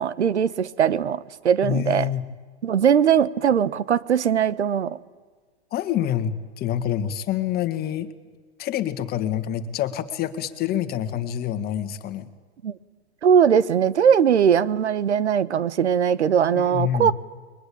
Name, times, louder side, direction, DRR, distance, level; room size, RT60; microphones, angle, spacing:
voice 1, 0.0-2.1 2.6-5.0 12.6-12.7 13.2-17.1, right 8 dB, 85° right, 17 dB, 1.2 m, -20 dB
voice 2, 1.6-2.2 5.7-8.1 8.6-12.3 16.5-17.1, left 10 dB, 30° left, 10 dB, 1.9 m, -27 dB
30.0 x 22.5 x 8.7 m, 1.4 s
hypercardioid pair, 125°, 33 cm